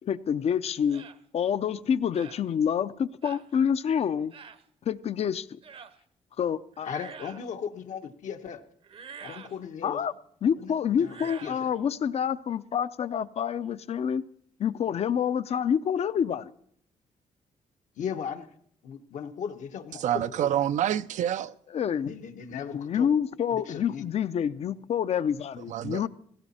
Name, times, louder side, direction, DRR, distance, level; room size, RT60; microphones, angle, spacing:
voice 1, 0.0-1.1 1.3-4.3 4.9-5.6 6.4-6.9 9.8-10.1 10.4-14.2 14.6-16.5 21.7-22.1 22.5-26.1, left 8 dB, 55° left, 0.6 m, -27 dB
sound 1, 0.9-1.2 2.1-2.4 3.2-3.5 4.3-4.6 5.6-6.0 6.7-7.5 8.8-9.6 11.0-11.6, right 6 dB, 45° right, 0.8 m, -45 dB
voice 2, 6.8-8.6 9.2-10.0 10.6-10.7 11.0-11.7 17.9-18.6 18.8-20.5 22.0-23.1 23.5-24.0, left 7 dB, 75° left, 1.2 m, -37 dB
voice 3, 19.9-21.5 25.7-26.1, right 11 dB, 70° right, 0.5 m, -27 dB
17.5 x 16.5 x 4.3 m
cardioid pair, 115°, 13 cm